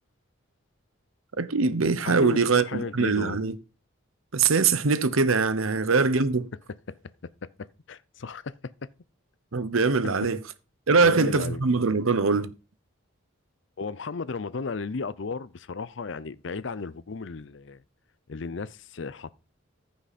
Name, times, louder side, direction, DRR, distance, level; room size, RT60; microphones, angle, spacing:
voice 1, 1.4-3.6 4.3-6.5 9.5-10.4 10.9-12.5, right 4 dB, 90° right, 0.9 m, -22 dB
voice 2, 2.0-3.4 6.9-7.0 7.6-8.9 11.0-11.6 13.8-17.8 18.3-19.3, left 4 dB, 60° left, 0.5 m, -35 dB
14.5 x 5.9 x 4.2 m
head